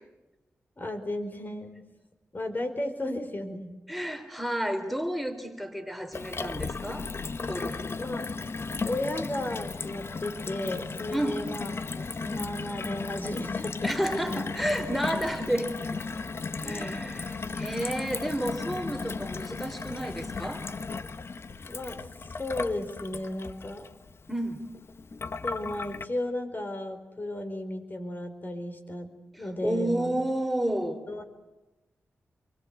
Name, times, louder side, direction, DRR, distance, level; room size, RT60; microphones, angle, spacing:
voice 1, 0.8-1.8 2.3-3.7 7.9-8.3 8.8-11.7 12.0-14.4 16.6-17.0 21.7-22.0 22.4-23.8 25.4-29.1 29.4-30.2 31.1-31.2, left 1 dB, 40° left, 8 dB, 4.6 m, -34 dB
voice 2, 3.9-7.1 7.5-7.9 11.1-11.4 13.8-15.9 16.6-20.7 24.3-24.6 29.3-31.0, right 1 dB, ahead, 8 dB, 3.8 m, -31 dB
Gurgling / Water tap faucet / Sink (filling or washing), 6.1-26.0, left 4 dB, 55° left, 1.2 m, -35 dB
28.0 x 23.5 x 8.2 m, 1.1 s
cardioid pair, 65°, 5 cm